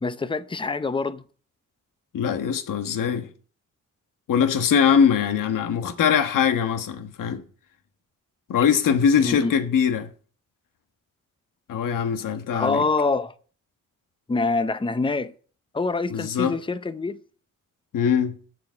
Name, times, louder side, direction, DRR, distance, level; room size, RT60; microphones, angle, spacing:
voice 1, 0.0-1.2 9.2-9.5 12.5-13.3 14.3-15.3 15.7-17.2, left 3 dB, 15° left, 0.7 m, -25 dB
voice 2, 2.1-3.3 4.3-7.4 8.5-10.1 11.7-12.8 16.1-16.6 17.9-18.4, left 7 dB, 80° left, 1.3 m, -22 dB
14.0 x 4.9 x 8.3 m
cardioid pair, 100°, 32 cm